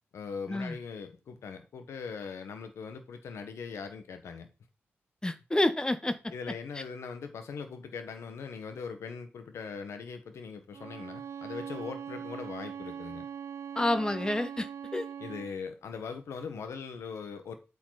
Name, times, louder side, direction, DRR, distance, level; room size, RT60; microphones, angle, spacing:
voice 1, 0.1-4.5 6.3-13.3 15.2-17.5, left 5 dB, 85° left, 1.5 m, -40 dB
voice 2, 5.2-6.2 13.8-15.1, left 1 dB, 15° left, 0.9 m, -29 dB
Bowed string instrument, 10.7-15.6, right 8 dB, 75° right, 0.5 m, -41 dB
8.7 x 5.7 x 4.0 m
cardioid pair, 80°, 5 cm